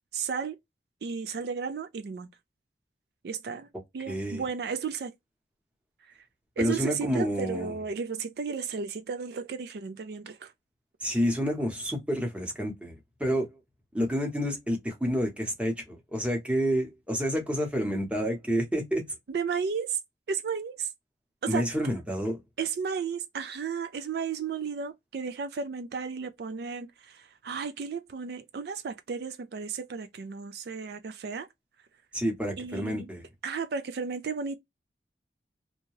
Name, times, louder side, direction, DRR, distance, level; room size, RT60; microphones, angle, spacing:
voice 1, 0.1-0.6 1.0-2.3 3.2-3.7 3.9-5.1 6.6-10.5 19.3-20.0 20.3-20.9 21.4-21.7 22.6-31.5 32.6-33.1 33.4-34.6, right 6 dB, 60° right, 0.3 m, -33 dB
voice 2, 4.1-4.4 6.6-7.8 11.0-12.9 13.2-13.5 13.9-19.0 21.5-22.4 32.1-33.3, equal, 5° right, 0.9 m, -29 dB
2.7 x 2.2 x 3.0 m
head